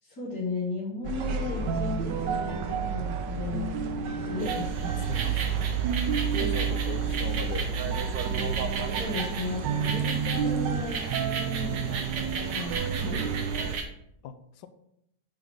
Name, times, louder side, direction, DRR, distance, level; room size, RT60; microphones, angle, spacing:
voice 1, 0.0-3.7 4.2-5.3 6.4-6.7 8.9-13.3, left 2 dB, 55° left, -7 dB, 2.2 m, -36 dB
sound 1, 1.0-13.8, right 6 dB, 85° right, 1.3 m, -30 dB
sound 2, 4.4-13.8, right 5 dB, 65° right, 1.5 m, -36 dB
voice 2, 4.9-8.0 14.2-14.7, left 7 dB, 75° left, 10 dB, 1.3 m, -41 dB
8.8 x 4.0 x 4.6 m, 0.75 s
omnidirectional pair, 1.9 m